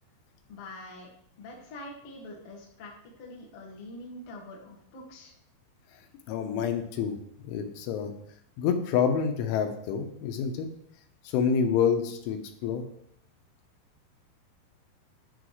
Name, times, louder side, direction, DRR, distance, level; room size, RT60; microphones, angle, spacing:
voice 1, 0.5-1.1 1.4-2.9 3.2-5.3, left 1 dB, 60° left, -2 dB, 1.5 m, -44 dB
voice 2, 6.3-8.1 8.6-10.7 11.3-12.8, left 7 dB, 85° left, 6 dB, 3.3 m, -28 dB
11.0 x 6.3 x 3.2 m, 0.71 s
omnidirectional pair, 5.4 m